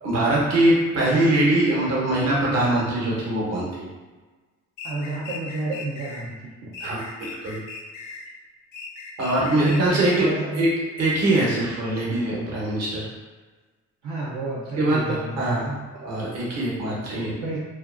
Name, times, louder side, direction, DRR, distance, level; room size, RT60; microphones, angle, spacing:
voice 1, 0.0-3.9 6.8-7.6 9.2-10.7 11.0-13.1 14.8-17.4, right 1 dB, 60° right, -5 dB, 1.0 m, -23 dB
sound 1, 4.8-6.2 6.7-8.3 8.7-10.3, left 4 dB, 85° left, 0.5 m, -38 dB
voice 2, 4.8-6.7 9.5-10.6 14.0-15.7 17.1-17.6, right 2 dB, 80° right, -8 dB, 0.7 m, -31 dB
2.7 x 2.4 x 2.4 m, 1.3 s
cardioid pair, 90°, 30 cm